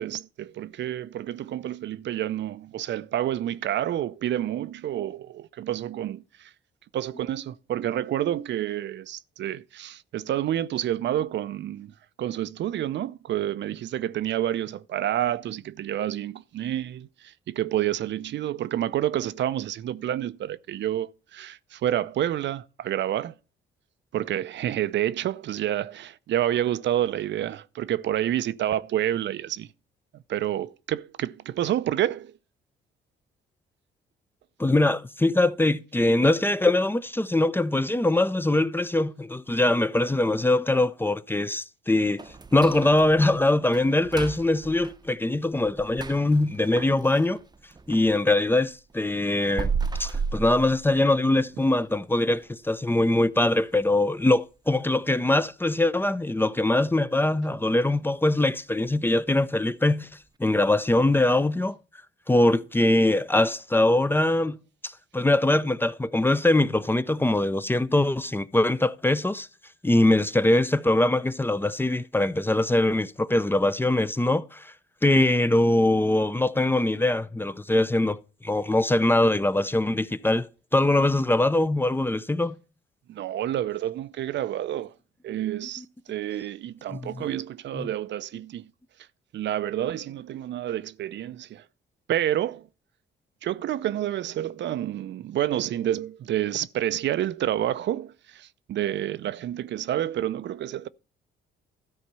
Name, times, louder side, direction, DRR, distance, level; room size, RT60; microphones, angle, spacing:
voice 1, 0.0-6.5 6.9-23.3 24.1-29.7 30.3-32.4 83.1-84.9 85.2-88.7 89.3-91.6 92.1-92.7 93.4-100.9, right 12 dB, 65° right, 0.6 m, -29 dB
voice 2, 34.6-42.2 42.5-47.4 47.9-49.7 50.0-60.1 60.4-61.7 62.3-64.6 64.8-69.5 69.8-74.7 75.0-78.2 78.4-82.5 87.0-87.3 87.8-87.9, left 2 dB, 10° left, 0.5 m, -22 dB
sound 1, 42.2-48.1 48.5-51.3 51.7-51.8 52.3-52.4 52.9-53.2 53.6-53.7 54.2-54.3, right 5 dB, 20° right, 0.7 m, -35 dB
13.0 x 4.4 x 6.7 m
cardioid pair, 90°, 20 cm